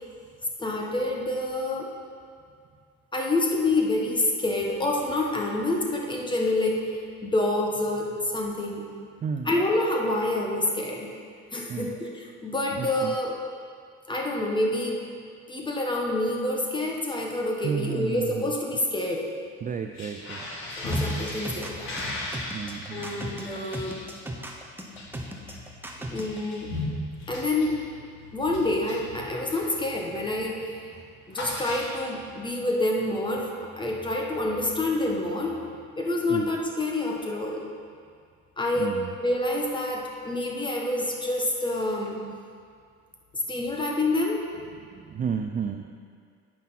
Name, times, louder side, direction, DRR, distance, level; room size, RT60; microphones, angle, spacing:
voice 1, 0.6-1.9 3.1-8.9 9.4-11.1 11.5-13.3 14.1-15.0 15.5-19.3 20.8-21.9 22.9-23.9 26.1-26.7 27.3-27.8 28.3-30.9 31.3-33.5 33.8-35.6 35.9-37.6 38.6-42.2 43.5-44.4, left 2 dB, 15° left, -1 dB, 1.3 m, -27 dB
voice 2, 12.7-13.1 17.6-18.5 19.6-20.5 22.5-23.3 36.3-36.5 38.8-39.1 44.9-45.9, right 6 dB, 25° right, 5 dB, 0.3 m, -32 dB
sound 1, 19.9-29.8 30.1-30.4 30.7-32.3, left 1 dB, 55° left, 2.7 m, -37 dB
sound 2, 20.9-26.4, right 1 dB, 5° right, 0.9 m, -37 dB
9.1 x 6.0 x 5.7 m, 2.2 s
cardioid pair, 125°, 32 cm